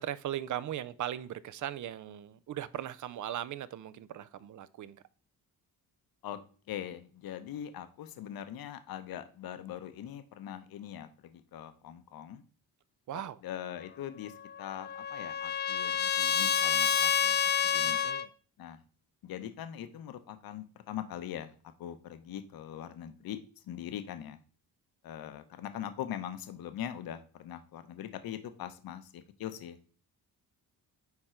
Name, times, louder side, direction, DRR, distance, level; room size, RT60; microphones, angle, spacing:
voice 1, 0.0-5.0 13.1-13.4 17.8-18.3, right 11 dB, 50° right, 0.5 m, -38 dB
voice 2, 6.7-12.4 13.1-17.4 17.6-18.0 18.6-18.8 19.2-23.4 23.6-24.4 25.0-29.9, left 10 dB, 65° left, 0.8 m, -42 dB
Trumpet, 14.4-18.3, left 8 dB, 30° left, 0.4 m, -29 dB
9.7 x 3.7 x 4.4 m
cardioid pair, 140°, 38 cm